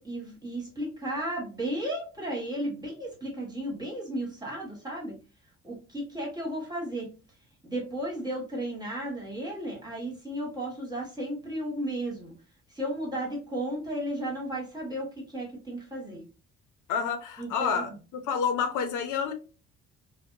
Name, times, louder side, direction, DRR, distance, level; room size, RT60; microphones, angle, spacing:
voice 1, 0.0-5.2 5.6-7.1 7.6-12.3 12.7-16.2 17.4-17.8, right 1 dB, 15° right, 1.4 m, -34 dB
voice 2, 16.9-19.3, left 6 dB, 80° left, 0.5 m, -29 dB
2.6 x 2.1 x 2.4 m
cardioid pair, 90°, 30 cm